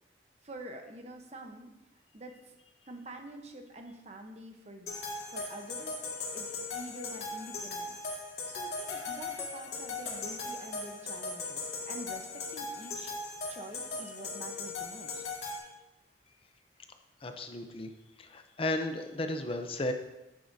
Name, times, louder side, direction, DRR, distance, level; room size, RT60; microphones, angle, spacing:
voice 1, 0.4-1.7 2.1-2.3 2.9-4.9 5.3-6.0 6.3-8.0 8.5-12.3 12.5-13.1 13.5-15.2, right 1 dB, 40° right, 4 dB, 1.0 m, -46 dB
sound 1, 4.9-15.6, left 3 dB, 70° left, 2.0 m, -38 dB
voice 2, 17.2-17.9 18.2-19.9, left 1 dB, 30° left, 6 dB, 0.6 m, -34 dB
10.0 x 9.4 x 2.7 m, 0.97 s
head